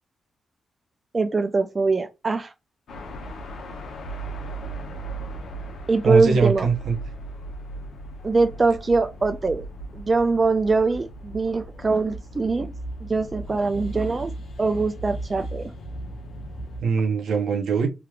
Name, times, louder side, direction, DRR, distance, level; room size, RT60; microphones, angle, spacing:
voice 1, 1.1-2.5 5.9-6.7 8.2-9.7 9.9-12.7 13.1-14.3 14.6-15.7, right 3 dB, 35° right, 0.4 m, -22 dB
sound 1, 2.9-16.8, right 1 dB, 75° left, 0.8 m, -37 dB
voice 2, 6.0-7.0 16.8-17.9, right 5 dB, 75° right, 0.8 m, -22 dB
3.3 x 3.0 x 2.4 m
supercardioid pair, 55°, 0 cm